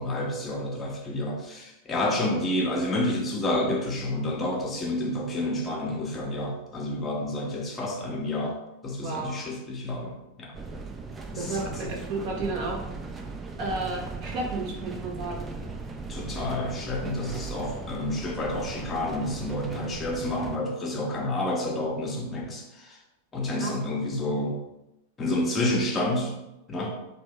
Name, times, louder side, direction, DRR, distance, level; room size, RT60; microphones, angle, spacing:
voice 1, 0.0-8.6 8.8-10.5 11.3-11.8 16.1-23.0 23.3-24.6 25.2-26.3 26.7-27.0, left 1 dB, 20° left, 0 dB, 0.6 m, -29 dB
voice 2, 9.0-9.4 11.4-12.8 13.6-15.5 23.6-23.7, right 2 dB, 45° right, 0 dB, 0.7 m, -32 dB
sound 1, 10.5-20.6, right 4 dB, 15° right, 0.3 m, -38 dB
2.8 x 2.1 x 3.5 m, 0.91 s
figure-of-eight pair, 90°, 0 cm